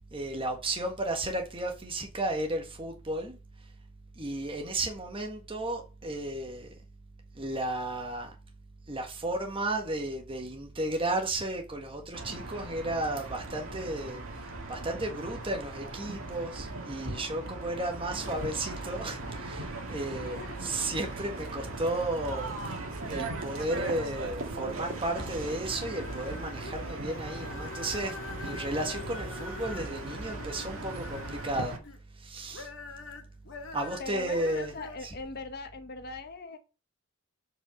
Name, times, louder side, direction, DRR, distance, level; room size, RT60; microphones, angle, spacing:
voice 1, 0.1-3.4 4.2-6.7 7.3-8.3 8.9-22.8 23.1-31.8 32.2-32.7 33.7-34.7 35.0-35.1, right 1 dB, 25° right, 1.6 m, -34 dB
sound 1, 12.1-31.8, right 2 dB, 75° right, 1.9 m, -38 dB
voice 2, 20.2-20.7 34.0-36.6, left 3 dB, 50° left, 1.1 m, -41 dB
sound 2, 24.5-32.0 32.4-35.0, left 3 dB, 65° left, 1.8 m, -45 dB
7.8 x 5.5 x 6.4 m
head